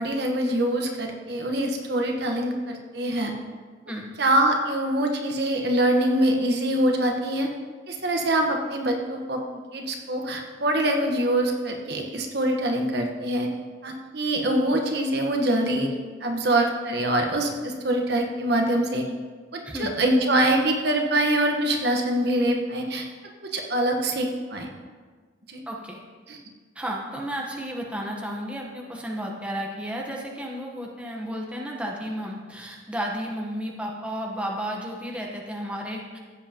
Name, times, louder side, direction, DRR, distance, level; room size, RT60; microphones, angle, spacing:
voice 1, 0.0-3.3 4.2-7.5 7.9-9.4 9.7-13.5 13.8-15.9 16.2-19.1 19.5-23.0 23.4-24.7 25.5-25.6 26.3-26.4, right 1 dB, 60° right, 2 dB, 1.2 m, -24 dB
voice 2, 25.7-26.0 26.7-36.2, equal, 5° right, -2 dB, 1.0 m, -32 dB
15.5 x 7.9 x 2.9 m, 1.5 s
head